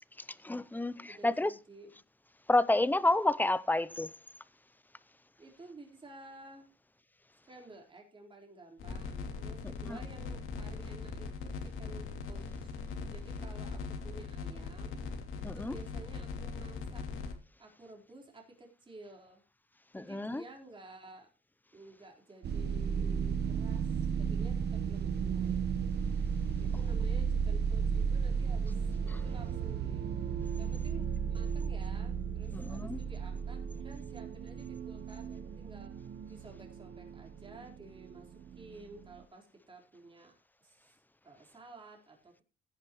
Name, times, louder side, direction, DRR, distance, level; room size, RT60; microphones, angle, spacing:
voice 1, 0.4-1.5 2.5-4.1 9.8-10.0 15.4-15.8 19.9-20.4 32.5-33.0, left 2 dB, 10° left, 0.6 m, -29 dB
voice 2, 1.0-1.9 5.4-6.7 7.5-12.8 13.1-15.1 15.5-17.1 17.6-19.4 19.9-21.3 21.7-25.6 26.6-30.1 30.6-35.9 36.3-40.3 40.6-41.0 41.2-42.4, right 2 dB, 25° right, 4.2 m, -53 dB
sound 1, 8.8-17.3, left 4 dB, 80° left, 2.8 m, -40 dB
sound 2, 22.4-39.2, right 6 dB, 55° right, 1.0 m, -34 dB
16.0 x 9.9 x 3.1 m
cardioid pair, 125°, 21 cm